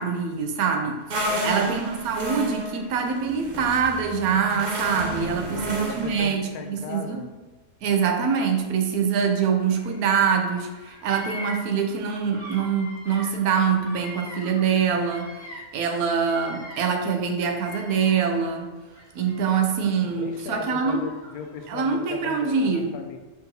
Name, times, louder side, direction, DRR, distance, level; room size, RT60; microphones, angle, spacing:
voice 1, 0.0-7.2 7.8-15.3 15.7-18.7 19.1-21.0 21.7-22.9, right 6 dB, 80° right, 4 dB, 1.1 m, -24 dB
sound 1, 1.1-6.3, right 1 dB, 55° right, 0.5 m, -31 dB
voice 2, 1.3-1.7 5.3-7.3 20.0-23.2, left 5 dB, 90° left, 5 dB, 1.1 m, -37 dB
Bird vocalization bird call bird song, 9.6-10.4 10.7-15.7 16.0-18.4 18.9-19.9 20.6-21.7, equal, 50° left, 1.8 m, -42 dB
5.0 x 3.9 x 2.7 m, 1.2 s
omnidirectional pair, 1.5 m